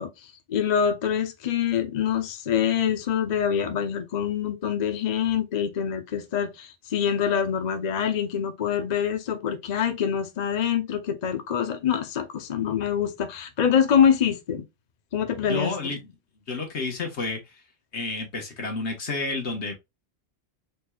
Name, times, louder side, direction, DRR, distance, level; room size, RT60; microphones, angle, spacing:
voice 1, 0.0-14.6 15.1-15.9, left 8 dB, 45° left, 0.8 m, -25 dB
voice 2, 15.5-16.1 16.5-17.6 17.9-19.7, left 3 dB, 90° left, 1.7 m, -30 dB
4.5 x 4.4 x 2.4 m
omnidirectional pair, 1.1 m